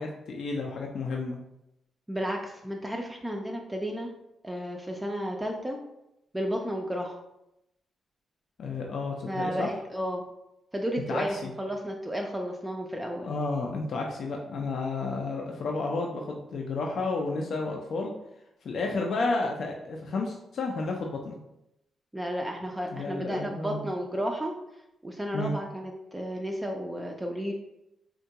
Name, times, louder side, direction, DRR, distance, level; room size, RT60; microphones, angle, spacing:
voice 1, 0.0-1.4 8.6-9.7 11.1-11.5 13.2-18.1 18.6-21.4 22.9-23.9 25.3-25.5, left 3 dB, 65° left, 0 dB, 0.4 m, -31 dB
voice 2, 2.1-4.1 4.4-5.8 6.3-7.2 9.3-10.3 10.7-13.3 22.1-24.5 25.0-27.5, equal, 10° right, 1 dB, 0.3 m, -32 dB
3.6 x 2.2 x 2.7 m, 0.85 s
cardioid pair, 90°, 0 cm